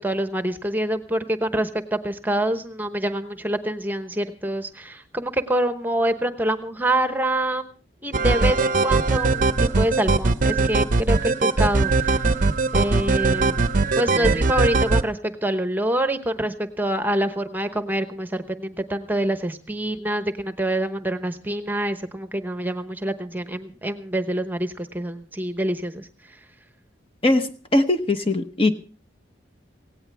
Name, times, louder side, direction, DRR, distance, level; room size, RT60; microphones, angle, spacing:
voice 1, 0.0-7.7 8.0-12.1 12.7-13.6 14.0-26.1, right 1 dB, 10° right, 9 dB, 1.0 m, -26 dB
sound 1, 8.1-15.0, right 3 dB, 45° right, 0.6 m, -20 dB
voice 2, 27.2-28.7, left 2 dB, 30° left, 8 dB, 0.9 m, -20 dB
17.5 x 17.0 x 3.4 m, 0.38 s
head